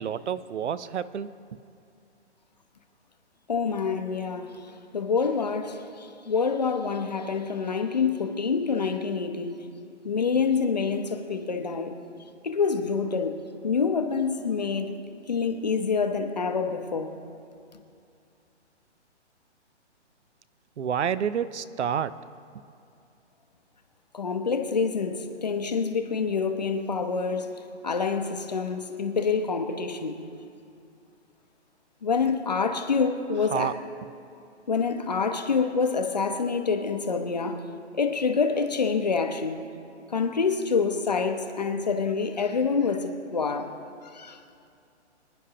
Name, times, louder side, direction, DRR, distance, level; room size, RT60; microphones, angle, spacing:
voice 1, 0.0-1.3 20.8-22.2 33.5-33.7, right 8 dB, 70° right, 0.6 m, -29 dB
voice 2, 3.5-4.7 4.9-9.6 10.0-12.0 12.4-13.4 13.6-14.9 15.3-17.1 24.1-27.5 27.8-30.2 32.0-33.7 34.7-37.6 37.9-39.6 40.1-43.7 44.1-44.4, left 5 dB, 35° left, 0.7 m, -27 dB
25.5 x 10.0 x 2.8 m
hypercardioid pair, 180°, 35 cm